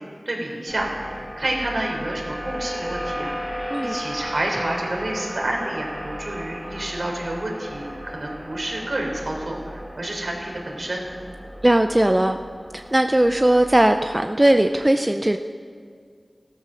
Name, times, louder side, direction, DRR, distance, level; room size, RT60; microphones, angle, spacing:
voice 1, 0.0-11.0, right 1 dB, 65° right, 0 dB, 3.8 m, -29 dB
sound 1, 0.7-14.8, equal, 5° right, 2.9 m, -35 dB
voice 2, 11.6-12.4 12.7-15.4, right 1 dB, 25° right, 7 dB, 0.6 m, -18 dB
14.5 x 13.5 x 6.4 m, 2.1 s
wide cardioid pair, 40°, 0 cm